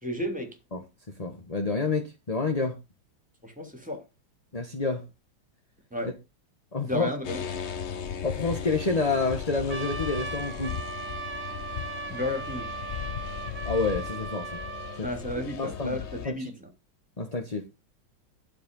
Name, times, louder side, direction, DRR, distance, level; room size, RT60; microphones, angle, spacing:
voice 1, 0.0-0.5 3.4-4.0 5.9-6.1 6.8-7.4 12.1-12.6 15.0-16.5, left 1 dB, 5° right, 3.2 m, -32 dB
voice 2, 1.2-2.8 4.5-5.0 6.7-7.1 8.2-10.8 13.6-14.6 15.0-15.1 15.6-16.0 16.2-16.5 17.2-17.6, left 3 dB, 20° left, 1.3 m, -28 dB
sound 1, 7.2-16.3, left 8 dB, 50° left, 0.8 m, -37 dB
Trumpet, 9.7-15.0, right 4 dB, 35° right, 0.9 m, -37 dB
13.0 x 7.0 x 5.4 m
omnidirectional pair, 2.2 m